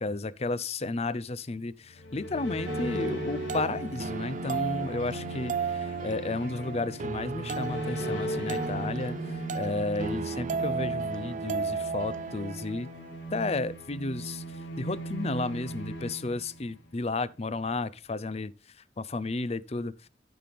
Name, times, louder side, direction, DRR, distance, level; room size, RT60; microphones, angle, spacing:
voice 1, 0.0-12.9 13.3-14.4 14.8-18.5 19.0-19.9, left 3 dB, 35° left, 0.6 m, -33 dB
sound 1, 1.8-17.0, equal, 85° left, 2.0 m, -39 dB
sound 2, 2.7-13.7, right 4 dB, 45° right, 0.4 m, -34 dB
14.0 x 6.0 x 3.5 m
head